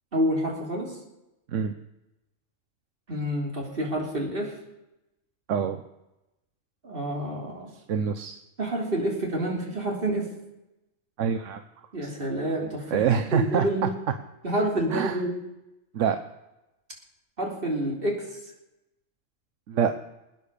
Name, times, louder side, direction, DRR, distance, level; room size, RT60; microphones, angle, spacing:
voice 1, 0.1-1.0 3.1-4.6 6.8-7.7 8.6-10.3 11.9-13.9 14.4-15.3 17.4-18.3, right 1 dB, 45° right, 0 dB, 3.5 m, -28 dB
voice 2, 5.5-5.8 7.9-8.4 11.2-11.6 12.0-12.1 12.9-13.9 14.9-15.2 15.9-16.2 19.7-19.9, right 7 dB, 75° right, 9 dB, 1.2 m, -25 dB
21.5 x 9.5 x 6.7 m, 0.94 s
omnidirectional pair, 1.3 m